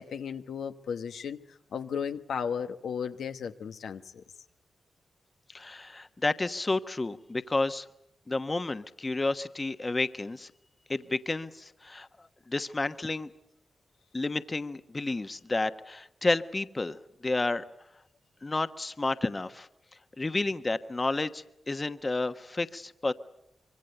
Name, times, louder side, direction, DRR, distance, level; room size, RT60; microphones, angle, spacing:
voice 1, 0.0-1.4 1.7-4.2, left 7 dB, 85° left, 1.1 m, -35 dB
voice 2, 5.5-7.9 8.3-10.5 10.9-12.1 12.5-13.3 14.1-17.6 18.4-19.7 20.2-23.1, left 2 dB, 30° left, 1.2 m, -31 dB
25.5 x 23.5 x 8.0 m
cardioid pair, 65°, 0 cm